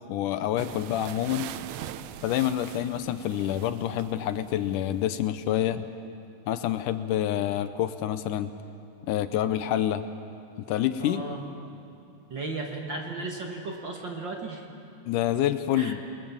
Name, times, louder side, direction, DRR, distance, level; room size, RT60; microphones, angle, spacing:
voice 1, 0.0-1.5 2.2-5.8 6.5-8.5 9.1-10.0 10.7-11.2 15.1-16.0, left 11 dB, 75° left, 11 dB, 2.1 m, -27 dB
sound 1, 0.6-5.2, right 12 dB, 80° right, 1.6 m, -42 dB
voice 2, 11.0-11.4 12.3-14.7 15.8-16.0, right 3 dB, 40° right, 1 dB, 1.9 m, -35 dB
28.0 x 21.0 x 7.3 m, 2.8 s
omnidirectional pair, 3.9 m